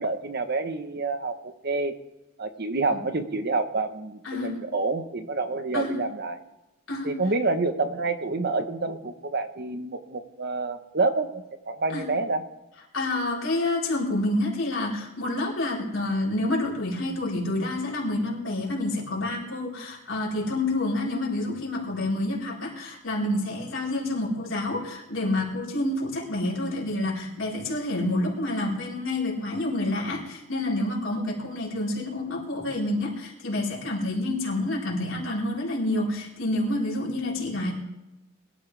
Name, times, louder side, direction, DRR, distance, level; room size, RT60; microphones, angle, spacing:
voice 1, 0.0-1.9 2.4-6.4 7.0-12.4, right 3 dB, 50° right, 8 dB, 1.1 m, -28 dB
voice 2, 4.2-4.6 5.7-6.0 6.9-7.2 11.9-12.1 12.9-37.7, left 1 dB, 70° left, -4 dB, 4.3 m, -28 dB
22.5 x 12.5 x 3.4 m, 0.97 s
head